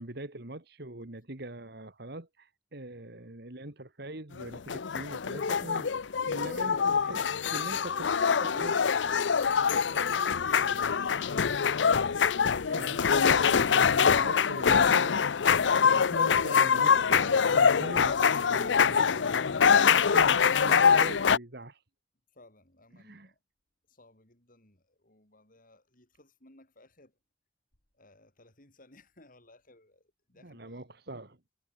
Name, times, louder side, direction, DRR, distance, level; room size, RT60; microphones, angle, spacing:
voice 1, 0.0-5.9 6.2-8.1 8.4-8.8 12.6-21.8 22.9-23.3 30.4-31.4, right 1 dB, 60° right, 2.5 m, -43 dB
sound 1, 4.4-21.4, left 6 dB, 90° left, 0.6 m, -24 dB
voice 2, 5.5-6.7 22.3-23.4 23.9-27.2 27.9-30.8, left 2 dB, 50° left, 7.3 m, -56 dB
head